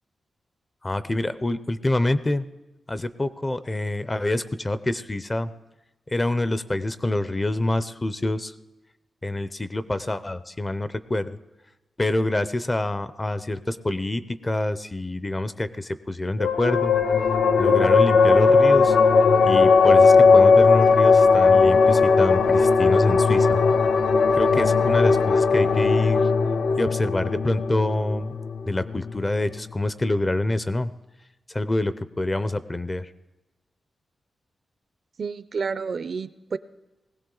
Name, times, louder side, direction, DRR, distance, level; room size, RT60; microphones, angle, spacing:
voice 1, 0.8-2.5 2.9-5.5 6.1-8.5 9.2-11.4 12.0-16.9 17.6-19.0 19.4-23.6 24.3-26.2 26.8-28.4 28.7-30.9 31.5-33.1, left 1 dB, 20° left, 13 dB, 0.5 m, -26 dB
sound 1, 16.4-29.3, left 4 dB, 80° left, 0.6 m, -18 dB
voice 2, 35.2-36.6, right 5 dB, 50° right, 14 dB, 0.4 m, -30 dB
20.0 x 16.0 x 3.8 m, 1.1 s
wide cardioid pair, 145°, 0 cm